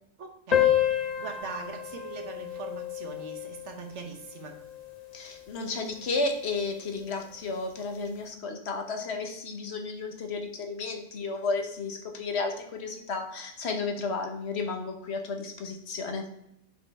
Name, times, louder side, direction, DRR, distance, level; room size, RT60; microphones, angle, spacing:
voice 1, 0.2-4.6, right 4 dB, 70° right, 4 dB, 1.3 m, -41 dB
sound 1, 0.5-5.5, left 10 dB, 40° left, 0.7 m, -30 dB
voice 2, 5.1-16.2, left 3 dB, 65° left, 4 dB, 1.2 m, -33 dB
5.7 x 5.0 x 4.3 m, 0.78 s
omnidirectional pair, 1.2 m